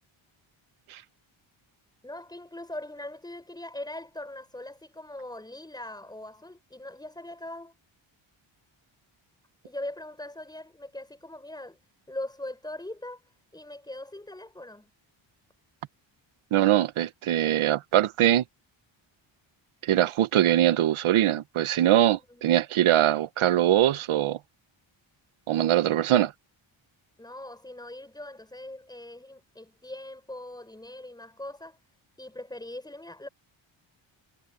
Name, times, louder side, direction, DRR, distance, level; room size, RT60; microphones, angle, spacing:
voice 1, 2.0-7.7 9.6-11.8 12.1-13.2 13.5-14.9 22.1-22.5 27.2-31.8 32.2-33.3, left 1 dB, 10° left, 6.3 m, -41 dB
voice 2, 16.5-18.4 19.8-24.4 25.5-26.3, right 12 dB, 85° right, 1.1 m, -22 dB
wide cardioid pair, 155°, 48 cm